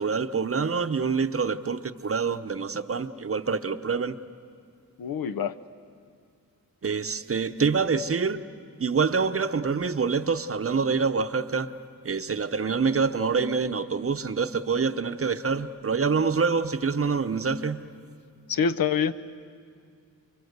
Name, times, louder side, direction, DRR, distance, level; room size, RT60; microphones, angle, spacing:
voice 1, 0.0-4.2 6.8-8.4 8.8-11.7 12.0-17.8, right 5 dB, 40° right, 10 dB, 0.7 m, -26 dB
voice 2, 5.0-5.6 18.5-19.1, left 6 dB, 75° left, 13 dB, 0.8 m, -25 dB
29.0 x 23.5 x 8.0 m, 2.3 s
wide cardioid pair, 140°, 35 cm